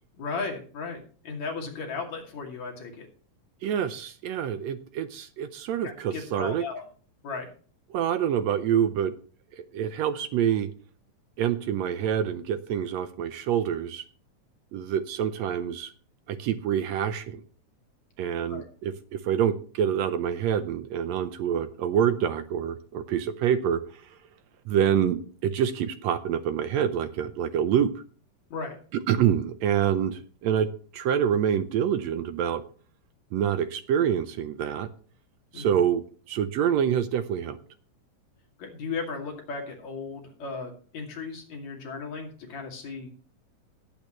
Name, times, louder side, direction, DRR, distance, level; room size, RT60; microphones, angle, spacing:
voice 1, 0.2-3.1 5.8-6.9 7.2-7.5 18.5-18.7 28.5-28.8 35.5-35.8 38.6-43.1, left 4 dB, 60° left, 1 dB, 3.6 m, -36 dB
voice 2, 3.6-6.6 7.9-9.1 9.5-10.7 11.4-14.0 14.7-15.9 16.3-17.4 18.2-23.8 24.7-27.9 29.1-32.6 33.3-34.9 35.5-37.6, right 9 dB, 80° right, 10 dB, 1.6 m, -26 dB
17.0 x 8.6 x 3.1 m, 0.42 s
omnidirectional pair, 3.8 m